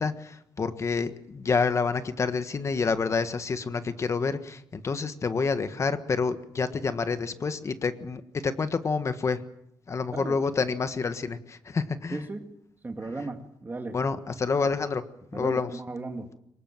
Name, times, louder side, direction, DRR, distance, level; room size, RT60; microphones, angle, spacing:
voice 1, 0.0-9.4 9.9-12.2 13.9-15.0 15.3-15.7, left 4 dB, 40° left, 10 dB, 1.5 m, -28 dB
voice 2, 12.1-12.5 12.8-14.0 15.3-16.3, right 3 dB, 25° right, 5 dB, 2.4 m, -36 dB
23.0 x 20.0 x 7.6 m, 0.77 s
cardioid pair, 100°, 8 cm